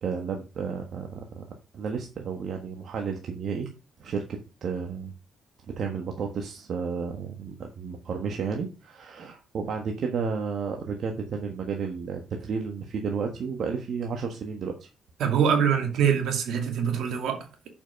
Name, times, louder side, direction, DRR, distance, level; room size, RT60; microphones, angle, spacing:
voice 1, 0.0-1.1 1.3-1.4 1.7-3.7 4.0-5.1 5.8-14.9, right 5 dB, 60° right, 1.4 m, -32 dB
voice 2, 15.2-17.7, right 7 dB, 75° right, 2.5 m, -24 dB
7.0 x 6.0 x 5.2 m
cardioid pair, 90°, 0 cm